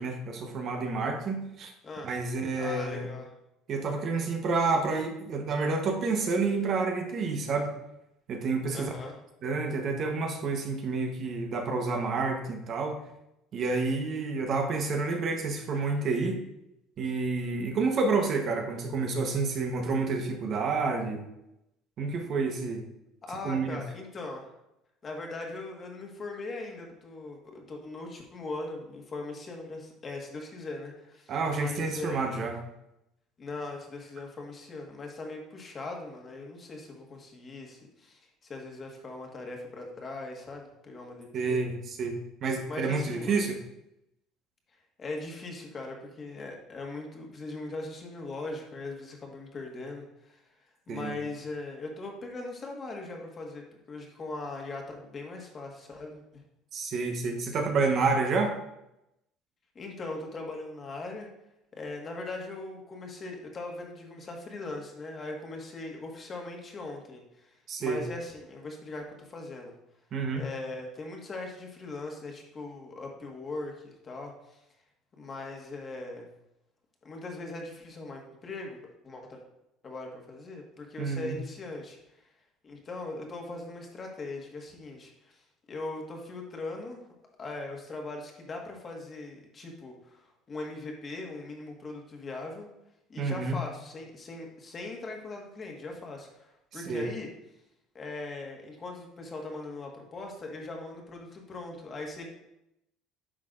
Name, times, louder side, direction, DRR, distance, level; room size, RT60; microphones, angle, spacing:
voice 1, 0.0-1.7 2.0-3.1 3.7-7.7 8.3-8.9 9.4-13.0 13.5-16.4 17.0-21.3 22.0-22.8 23.4-23.8 31.3-32.6 41.3-43.6 50.9-51.1 56.7-58.5 67.7-68.0 70.1-70.4 81.0-81.4 93.2-93.6 96.9-97.1, right 4 dB, 45° right, 3 dB, 1.1 m, -29 dB
voice 2, 2.6-3.3 8.7-9.1 23.2-24.5 25.0-32.5 33.4-41.6 42.7-43.5 45.0-50.4 50.9-56.4 59.7-61.3 61.7-69.7 70.3-74.6 75.2-76.2 77.0-79.4 79.8-82.0 82.6-87.0 87.4-92.7 93.1-97.3 97.9-102.2, left 2 dB, 30° left, 1 dB, 1.6 m, -40 dB
9.9 x 5.7 x 2.6 m, 0.86 s
cardioid pair, 120°, 0 cm